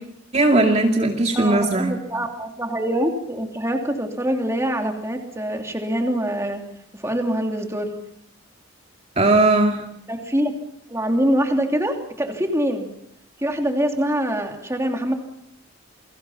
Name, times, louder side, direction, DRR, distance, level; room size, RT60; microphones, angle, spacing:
voice 1, 0.3-1.9 9.2-9.8, right 2 dB, 30° right, 2 dB, 2.4 m, -18 dB
voice 2, 1.3-6.6 6.9-7.9 10.1-10.5 10.9-12.9 13.4-15.1, equal, 15° right, 3 dB, 3.0 m, -24 dB
29.0 x 23.0 x 5.8 m, 0.73 s
head